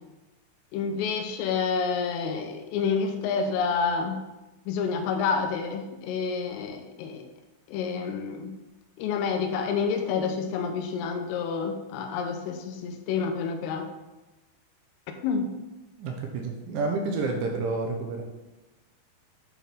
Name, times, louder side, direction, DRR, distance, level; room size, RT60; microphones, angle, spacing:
voice 1, 0.7-4.2 4.7-7.2 7.7-8.5 9.0-13.9 15.2-15.5, left 5 dB, 85° left, 5 dB, 3.3 m, -28 dB
voice 2, 16.0-18.2, right 3 dB, 80° right, 2 dB, 2.9 m, -29 dB
9.6 x 3.6 x 5.8 m, 1.1 s
omnidirectional pair, 5.9 m